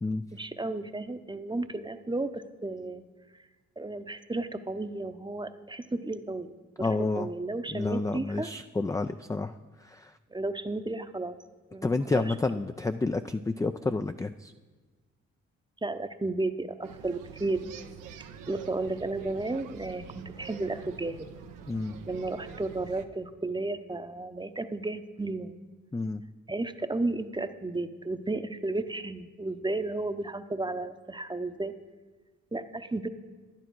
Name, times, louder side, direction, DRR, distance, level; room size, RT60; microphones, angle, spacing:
voice 1, 0.3-3.0 3.8-6.5 6.8-8.5 10.3-11.4 11.7-12.0 12.3-12.4 15.8-17.7 18.5-21.3 22.1-25.6 26.5-31.8 32.5-33.1, right 2 dB, 15° right, 10 dB, 0.8 m, -33 dB
voice 2, 6.8-7.3 7.7-9.5 9.8-10.1 11.8-14.5 21.7-21.9 25.9-26.2, left 3 dB, 10° left, 8 dB, 0.4 m, -30 dB
sound 1, 16.8-23.1, right 8 dB, 80° right, 0.8 m, -46 dB
11.0 x 10.5 x 4.6 m, 1.3 s
hypercardioid pair, 45°, 32 cm